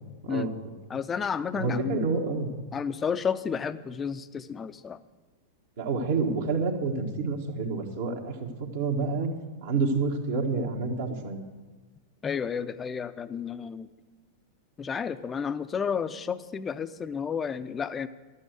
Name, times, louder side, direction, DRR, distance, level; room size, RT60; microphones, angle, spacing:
voice 1, 0.9-2.0 2.7-5.0 12.2-13.9 14.8-18.1, left 6 dB, 20° left, 13 dB, 0.6 m, -31 dB
voice 2, 1.5-2.5 5.8-9.3 9.6-11.4, right 4 dB, 65° right, 1 dB, 1.6 m, -28 dB
12.0 x 8.5 x 7.9 m, 1.3 s
figure-of-eight pair, 95°, 0 cm